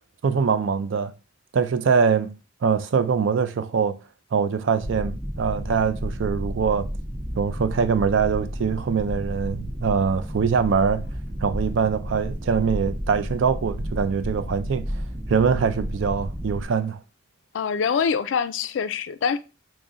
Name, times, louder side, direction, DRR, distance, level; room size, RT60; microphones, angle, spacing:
voice 1, 0.2-1.1 1.5-4.0 4.3-6.9 7.4-11.0 11.4-14.9 15.3-17.0, right 6 dB, 75° right, 0.4 m, -23 dB
sound 1, 4.8-16.7, equal, 10° right, 0.4 m, -32 dB
voice 2, 17.5-19.4, left 6 dB, 70° left, 0.3 m, -24 dB
3.9 x 2.1 x 3.5 m
head